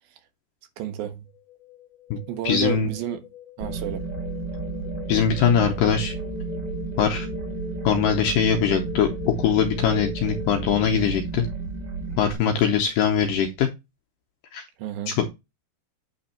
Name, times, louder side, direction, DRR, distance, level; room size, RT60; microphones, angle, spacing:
voice 1, 0.8-1.2 2.3-3.2 3.6-4.0 14.8-15.2, right 11 dB, 75° right, 2.5 m, -30 dB
sound 1, 1.3-11.2, left 4 dB, 50° left, 1.6 m, -40 dB
voice 2, 2.5-2.9 5.1-6.1 7.0-7.3 7.8-11.5 12.2-13.7 14.5-14.6 15.1-15.3, left 7 dB, 80° left, 2.1 m, -22 dB
sound 2, 3.6-12.3, right 3 dB, 25° right, 2.1 m, -32 dB
8.7 x 3.4 x 4.2 m
omnidirectional pair, 4.5 m